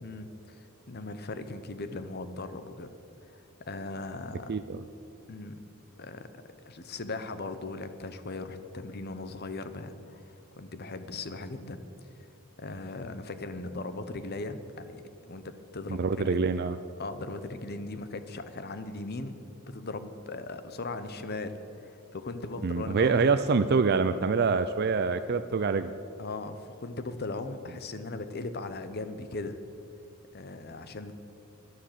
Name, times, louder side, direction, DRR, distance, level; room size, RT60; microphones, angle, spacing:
voice 1, 0.0-2.9 3.3-3.4 3.7-4.5 5.3-5.6 6.0-6.3 6.7-11.8 12.6-16.4 17.0-19.4 19.7-23.3 26.2-29.6 30.3-31.1, left 2 dB, 45° left, 11 dB, 0.9 m, -38 dB
voice 2, 15.9-16.8 22.6-25.9, right 4 dB, 50° right, 11 dB, 0.4 m, -25 dB
13.5 x 11.5 x 6.7 m, 2.9 s
head